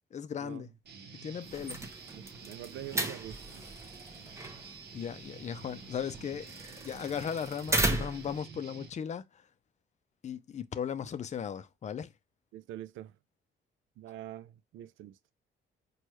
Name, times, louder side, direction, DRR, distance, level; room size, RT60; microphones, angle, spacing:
voice 1, 0.1-0.7 1.2-1.8 4.9-9.5 10.2-12.1, left 8 dB, 35° left, 0.5 m, -37 dB
Guitar, 0.8-8.9, right 5 dB, 55° right, 0.8 m, -50 dB
sound 1, 1.4-8.4, right 2 dB, 15° right, 0.7 m, -36 dB
voice 2, 2.1-3.4 12.5-13.2 14.0-15.2, right 12 dB, 80° right, 0.4 m, -45 dB
4.4 x 2.3 x 3.1 m
cardioid pair, 90°, 20 cm